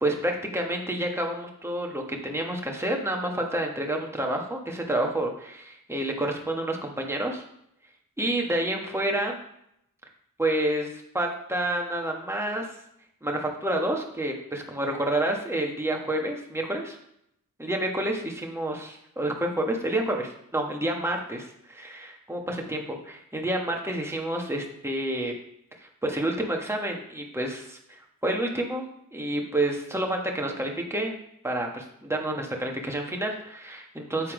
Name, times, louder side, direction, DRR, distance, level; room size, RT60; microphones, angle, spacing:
voice 1, 0.0-7.4 8.2-9.4 10.4-12.8 13.2-17.0 17.6-25.3 25.8-28.8 29.1-31.1 31.4-34.3, right 1 dB, 5° right, 0 dB, 1.6 m, -29 dB
8.3 x 4.2 x 5.0 m, 0.76 s
cardioid pair, 65°, 35 cm